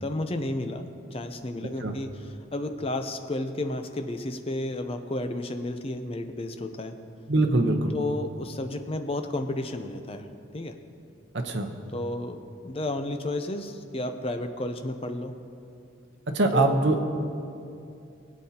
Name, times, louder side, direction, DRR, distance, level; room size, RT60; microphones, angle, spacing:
voice 1, 0.0-7.0 7.9-10.3 10.5-10.8 11.9-15.3 16.5-16.8, left 1 dB, 30° left, 7 dB, 0.6 m, -32 dB
voice 2, 7.3-8.0 11.3-11.7 16.3-17.0, right 2 dB, 70° right, 4 dB, 0.9 m, -23 dB
20.5 x 8.2 x 2.9 m, 2.6 s
head